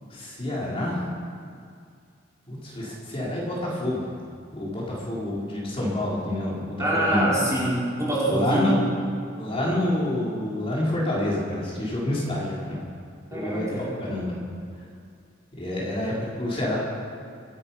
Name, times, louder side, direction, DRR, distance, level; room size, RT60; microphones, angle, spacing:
voice 1, 0.1-1.0 2.5-4.1 4.5-7.3 8.3-8.8 9.3-12.8 13.3-14.4 14.8-14.9 15.6-16.8, left 1 dB, 30° left, -6 dB, 3.9 m, -28 dB
voice 2, 6.8-8.8 13.3-13.9, right 1 dB, 15° right, -7 dB, 4.4 m, -25 dB
24.5 x 10.0 x 5.6 m, 2.3 s
head